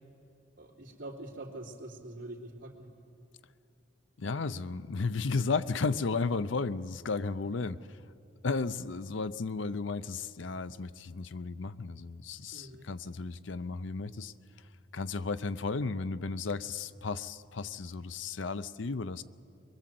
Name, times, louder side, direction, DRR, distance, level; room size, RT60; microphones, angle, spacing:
voice 1, 0.6-2.9 12.5-12.9, right 1 dB, 70° right, -1 dB, 3.2 m, -44 dB
voice 2, 4.2-7.8 8.4-14.3 14.9-19.2, left 4 dB, 75° left, 14 dB, 0.6 m, -34 dB
24.0 x 22.5 x 7.7 m, 2.7 s
head